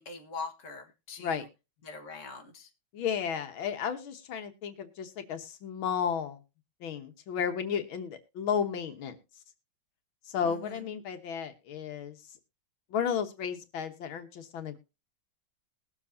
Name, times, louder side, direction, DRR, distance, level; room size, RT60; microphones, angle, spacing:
voice 1, 0.0-1.5 1.8-2.7 10.4-10.9, left 4 dB, 40° left, 3 dB, 1.9 m, -42 dB
voice 2, 2.9-6.4 6.8-9.2 10.3-12.2 12.9-14.8, left 7 dB, 85° left, 7 dB, 2.0 m, -33 dB
20.5 x 7.3 x 2.7 m, 0.29 s
omnidirectional pair, 2.2 m